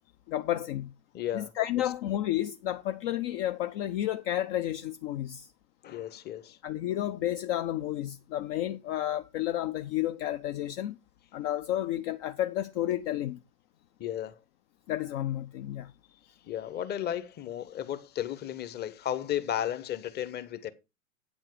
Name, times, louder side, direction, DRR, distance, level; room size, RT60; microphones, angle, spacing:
voice 1, 0.3-0.9 1.3-5.5 6.6-11.0 11.3-13.4 14.9-15.9, left 13 dB, 40° left, 0.7 m, -31 dB
voice 2, 1.1-1.5 1.8-1.9 5.8-6.9 14.0-14.4 16.5-20.7, left 11 dB, 25° left, 1.0 m, -34 dB
9.0 x 7.5 x 4.8 m
hypercardioid pair, 105°, 41 cm